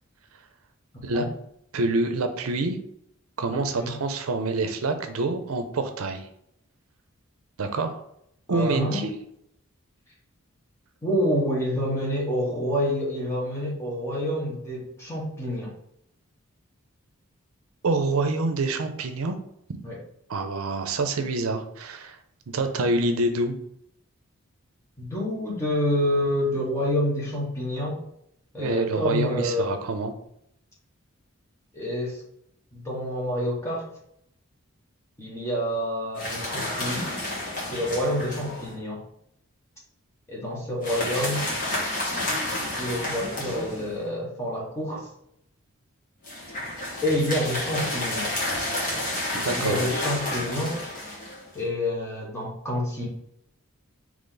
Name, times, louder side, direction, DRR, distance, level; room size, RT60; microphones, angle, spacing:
voice 1, 1.7-2.8 3.4-6.3 7.6-8.0 8.5-9.2 17.8-19.3 20.3-22.2 22.5-23.6 28.6-30.1 49.3-49.8, right 2 dB, 80° right, 7 dB, 0.5 m, -26 dB
voice 2, 3.5-4.0 8.5-9.1 11.0-15.7 19.8-20.0 25.0-28.0 28.5-29.8 31.7-32.2 32.7-33.9 35.2-37.1 37.7-39.0 40.3-41.5 42.5-45.1 47.0-48.3 49.5-51.0 51.5-53.1, equal, 10° left, -4 dB, 1.2 m, -28 dB
sound 1, 36.2-38.7 40.8-44.1 46.2-51.6, left 1 dB, 40° left, 1.4 m, -30 dB
3.9 x 3.0 x 3.8 m, 0.73 s
head